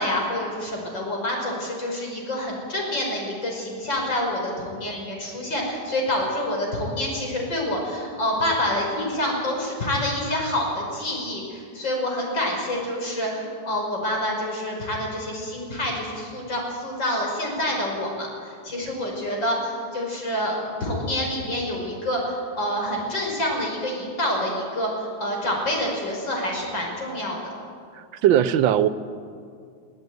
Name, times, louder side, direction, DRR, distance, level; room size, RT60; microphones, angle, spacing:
voice 1, 0.0-27.4, left 1 dB, 70° left, 0 dB, 6.1 m, -27 dB
voice 2, 27.9-28.9, right 10 dB, 80° right, 14 dB, 1.5 m, -19 dB
23.0 x 16.0 x 9.4 m, 2.2 s
omnidirectional pair, 2.1 m